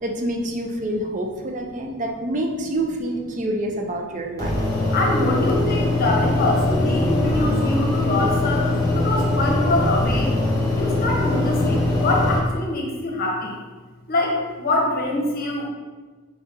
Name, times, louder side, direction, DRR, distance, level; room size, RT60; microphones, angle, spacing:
voice 1, 0.0-4.6, right 1 dB, 35° right, 2 dB, 0.4 m, -27 dB
sound 1, 4.4-12.4, left 2 dB, 15° left, 1.1 m, -22 dB
voice 2, 4.9-10.3 10.8-13.6 14.1-15.7, left 2 dB, 45° left, -1 dB, 0.8 m, -24 dB
4.7 x 3.9 x 2.6 m, 1.3 s
head